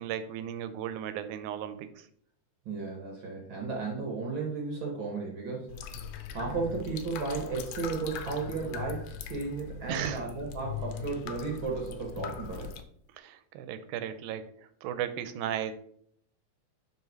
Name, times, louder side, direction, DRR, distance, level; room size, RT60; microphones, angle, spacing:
voice 1, 0.0-2.1 9.9-10.2 13.1-15.7, right 10 dB, 80° right, 11 dB, 2.0 m, -36 dB
voice 2, 2.6-5.8 6.1-12.7, right 4 dB, 60° right, -1 dB, 1.3 m, -34 dB
sound 1, 5.7-12.8, left 7 dB, 90° left, 2.2 m, -41 dB
5.6 x 4.9 x 4.5 m, 0.66 s
omnidirectional pair, 3.6 m